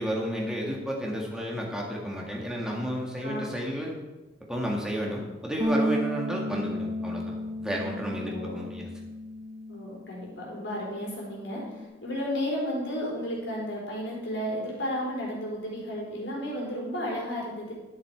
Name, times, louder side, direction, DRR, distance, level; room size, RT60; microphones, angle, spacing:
voice 1, 0.0-4.0 4.5-8.9, equal, 5° right, -2 dB, 1.7 m, -32 dB
voice 2, 3.2-3.5 8.3-8.6 9.7-17.7, equal, 70° left, -3 dB, 4.2 m, -33 dB
Bass guitar, 5.6-11.8, equal, 25° right, 1.1 m, -33 dB
11.0 x 9.6 x 4.6 m, 1.1 s
head